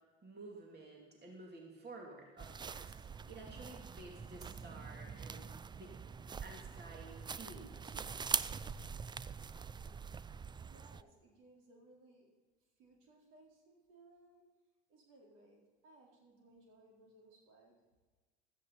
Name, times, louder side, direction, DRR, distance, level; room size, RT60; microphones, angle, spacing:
voice 1, 0.2-2.9 3.3-5.5 5.8-5.9 6.2-8.2, right 2 dB, 30° right, 0 dB, 3.0 m, -52 dB
sound 1, 2.4-11.0, right 6 dB, 15° right, 0.4 m, -43 dB
voice 2, 10.6-12.3 12.8-14.4 14.9-17.8, right 2 dB, 65° right, -2 dB, 4.1 m, -63 dB
16.0 x 13.5 x 4.2 m, 1.3 s
hypercardioid pair, 65°, 34 cm